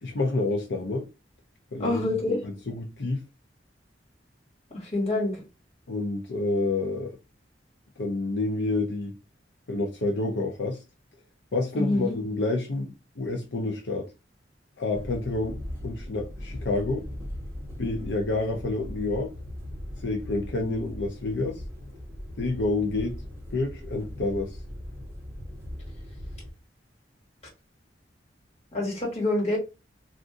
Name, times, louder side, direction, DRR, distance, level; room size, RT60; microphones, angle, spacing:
voice 1, 0.0-1.1 1.7-2.0 2.4-3.2 5.9-7.1 8.0-9.1 9.7-10.8 11.5-14.1 14.8-15.6 15.8-17.0 17.8-19.3 20.0-21.6 22.4-23.2 23.5-24.6, left 2 dB, 70° left, 0.6 m, -28 dB
voice 2, 1.8-2.4 4.7-5.4 11.7-12.1 28.7-29.6, left 2 dB, 35° left, 1.7 m, -26 dB
sound 1, 14.9-26.5, left 1 dB, 15° right, 0.9 m, -39 dB
2.5 x 2.5 x 3.6 m
head